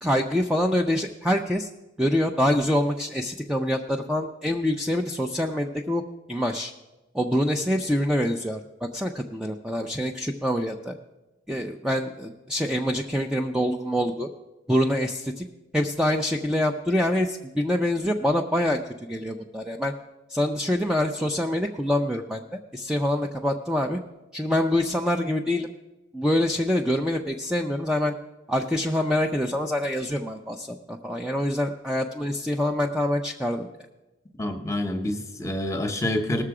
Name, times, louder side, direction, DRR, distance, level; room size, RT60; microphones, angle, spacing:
voice 1, 0.0-1.7 2.0-6.0 6.3-6.7 7.1-10.9 11.5-14.3 14.7-15.4 15.7-19.9 20.3-24.0 24.3-25.7 26.1-28.1 28.5-33.7, left 1 dB, 5° right, 2 dB, 0.4 m, -25 dB
voice 2, 34.4-36.4, left 1 dB, 15° left, 6 dB, 0.9 m, -27 dB
18.5 x 6.7 x 4.9 m, 1.1 s
head